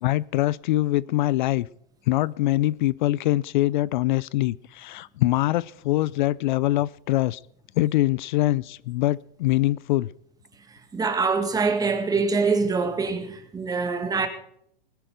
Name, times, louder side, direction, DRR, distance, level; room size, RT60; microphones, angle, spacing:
voice 1, 0.0-1.7 2.1-7.4 7.8-10.1, left 16 dB, 55° left, 0.5 m, -23 dB
voice 2, 10.9-14.3, right 4 dB, 10° right, 1.9 m, -24 dB
21.0 x 10.5 x 5.2 m
hypercardioid pair, 135°, 29 cm